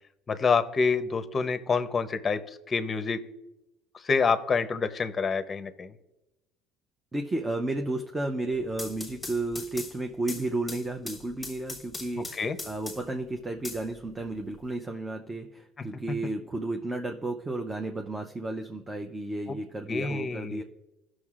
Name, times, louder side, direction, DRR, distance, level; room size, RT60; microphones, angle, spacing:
voice 1, 0.3-3.2 4.0-5.9 12.2-12.6 15.8-15.9 19.5-19.6 19.9-20.6, left 5 dB, 25° left, 9 dB, 0.7 m, -27 dB
voice 2, 7.1-20.6, right 2 dB, 15° right, 3 dB, 0.6 m, -33 dB
sound 1, 8.5-13.2 13.6-14.6, left 2 dB, 5° left, 1.3 m, -41 dB
17.5 x 6.2 x 2.4 m, 0.95 s
cardioid pair, 120°, 0 cm